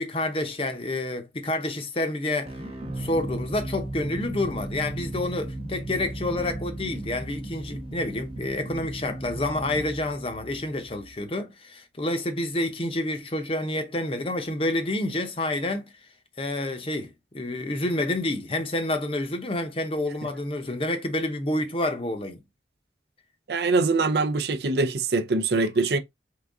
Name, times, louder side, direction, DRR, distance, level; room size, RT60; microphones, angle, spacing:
voice 1, 0.0-2.5 3.0-15.9 16.4-22.4 25.5-25.7, left 1 dB, 30° left, 0.7 m, -29 dB
sound 1, 2.5-11.1, right 1 dB, 35° right, 0.8 m, -35 dB
voice 2, 23.5-26.0, right 3 dB, 60° right, 0.5 m, -23 dB
3.8 x 3.5 x 3.5 m
head